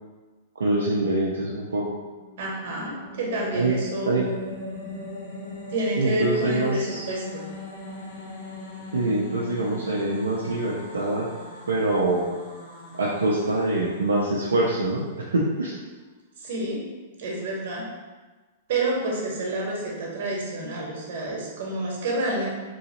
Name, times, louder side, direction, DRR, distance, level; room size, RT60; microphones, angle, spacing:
voice 1, 0.6-1.9 3.5-3.8 4.1-4.3 6.0-7.1 8.9-11.3 11.7-12.3 12.9-15.8, right 2 dB, 85° right, -4 dB, 0.4 m, -24 dB
sound 1, 2.0-15.2, left 1 dB, 65° left, 0.9 m, -40 dB
voice 2, 2.4-4.1 5.7-7.5 16.4-16.8 17.2-17.9 18.7-22.5, right 2 dB, 60° right, -2 dB, 0.9 m, -29 dB
3.0 x 2.7 x 2.9 m, 1.3 s
hypercardioid pair, 110°, 0 cm